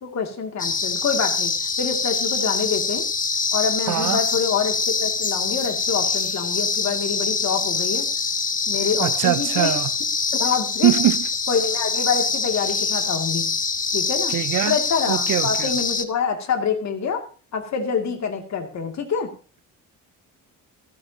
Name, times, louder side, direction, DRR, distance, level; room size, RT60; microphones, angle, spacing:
voice 1, 0.0-3.0 3.5-8.1 8.7-9.8 10.3-10.9 11.5-13.5 13.9-14.4 14.6-17.2 17.5-19.3, left 6 dB, 55° left, 2.5 m, -26 dB
sound 1, 0.6-16.0, left 5 dB, 25° left, 1.0 m, -24 dB
voice 2, 3.9-4.2 9.0-9.9 10.8-11.3 14.3-14.8 15.1-15.7, right 14 dB, 65° right, 0.6 m, -22 dB
16.0 x 14.5 x 2.8 m
cardioid pair, 130°, 33 cm